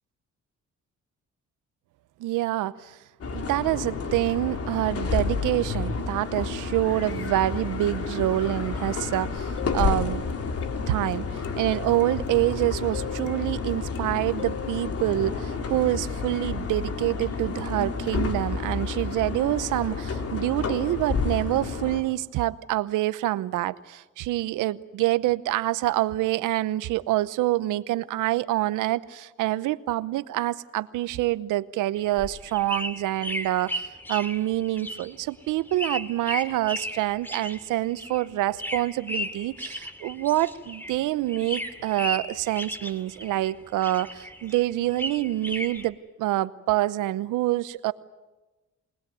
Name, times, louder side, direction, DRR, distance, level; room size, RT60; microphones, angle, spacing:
voice 1, 2.2-3.0 3.3-10.2 10.9-47.9, right 15 dB, 90° right, 16 dB, 0.9 m, -26 dB
sound 1, 3.2-22.0, left 4 dB, 50° left, 3.3 m, -30 dB
sound 2, 9.3-16.2 20.5-20.6 21.0-21.1, left 12 dB, 75° left, 1.0 m, -40 dB
sound 3, 32.0-41.0 41.3-43.5 43.8-45.9, equal, 5° left, 2.7 m, -35 dB
29.0 x 20.0 x 9.3 m, 1.1 s
cardioid pair, 90°, 30 cm